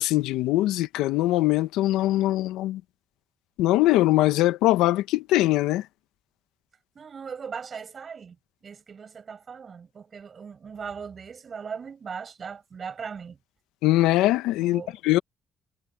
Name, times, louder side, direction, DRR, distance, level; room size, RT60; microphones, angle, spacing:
voice 1, 0.0-2.8 3.6-5.8 13.8-15.2, left 16 dB, 85° left, 1.1 m, -22 dB
voice 2, 6.9-8.4 8.6-13.4 14.6-15.0, right 6 dB, 50° right, 6.6 m, -39 dB
supercardioid pair, 55°, 0 cm